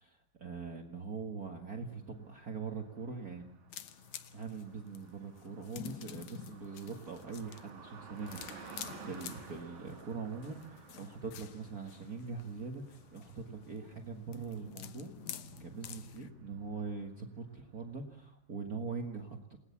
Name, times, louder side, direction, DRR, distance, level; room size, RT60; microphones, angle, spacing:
voice 1, 0.0-3.5 4.3-15.1 15.6-19.6, right 5 dB, 70° right, 3 dB, 0.8 m, -42 dB
Car passing by, 2.0-18.0, right 3 dB, 45° right, 5.2 m, -54 dB
sound 1, 3.7-16.3, left 11 dB, 70° left, 1.8 m, -50 dB
28.5 x 19.5 x 7.2 m, 0.70 s
omnidirectional pair, 4.8 m